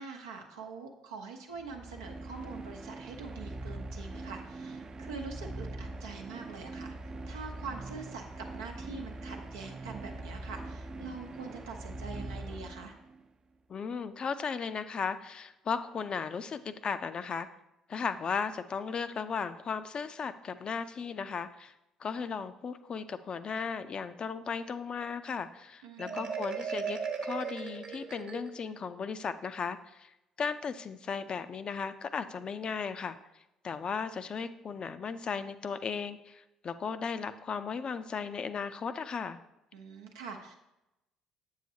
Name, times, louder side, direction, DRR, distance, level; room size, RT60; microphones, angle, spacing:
voice 1, 0.0-13.0 25.8-26.4 39.7-40.5, right 4 dB, 85° right, 2 dB, 0.8 m, -44 dB
sound 1, 1.5-13.3, right 2 dB, 35° right, 0.5 m, -42 dB
voice 2, 13.7-17.5 17.9-21.7 22.0-30.1 30.4-33.2 33.6-39.4, left 5 dB, 45° left, 11 dB, 0.4 m, -36 dB
Marimba xylophone, 26.0-28.8, right 6 dB, 55° right, 1.1 m, -37 dB
7.5 x 6.5 x 2.7 m, 0.91 s
hypercardioid pair, 55°, 2 cm